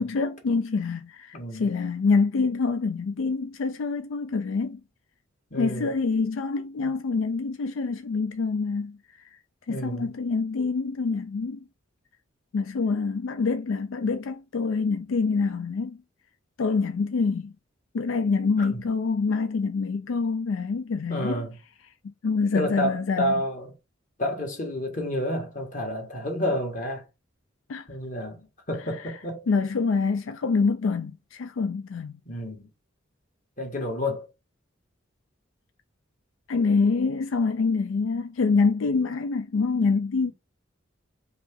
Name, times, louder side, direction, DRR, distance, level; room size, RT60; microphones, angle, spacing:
voice 1, 0.0-4.8 5.6-9.0 9.7-11.6 12.5-16.0 16.6-17.5 17.9-21.4 22.2-23.3 27.7-27.9 29.5-32.1 36.5-40.3, left 4 dB, 85° left, 0.4 m, -26 dB
voice 2, 1.3-1.7 5.5-5.9 9.7-10.1 18.6-18.7 21.1-21.5 22.5-23.7 24.2-27.0 27.9-29.4 32.2-32.7 33.6-34.3, equal, 40° left, 1.6 m, -30 dB
4.8 x 2.9 x 3.6 m
head